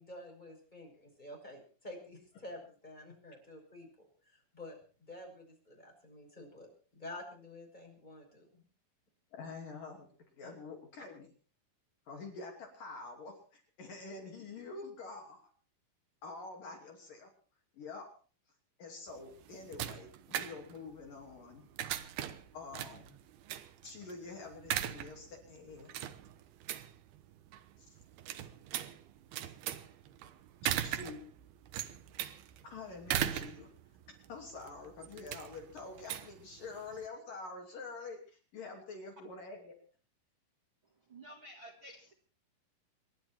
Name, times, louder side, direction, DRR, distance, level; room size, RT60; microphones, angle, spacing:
voice 1, 0.0-8.6 10.4-10.5, left 1 dB, 10° left, 1 dB, 6.0 m, -50 dB
voice 2, 9.3-10.1 10.3-11.3 12.1-15.5 16.2-17.3 17.7-18.1 18.8-21.7 22.5-23.2 23.8-25.9 27.8-28.0 30.6-31.2 32.6-33.7 34.1-39.7, left 3 dB, 50° left, 2 dB, 4.0 m, -47 dB
sound 1, 19.1-37.1, right 11 dB, 70° right, 2.4 m, -40 dB
voice 3, 40.8-42.1, right 1 dB, 55° right, 3 dB, 1.3 m, -52 dB
26.5 x 11.5 x 4.4 m, 0.39 s
omnidirectional pair, 5.7 m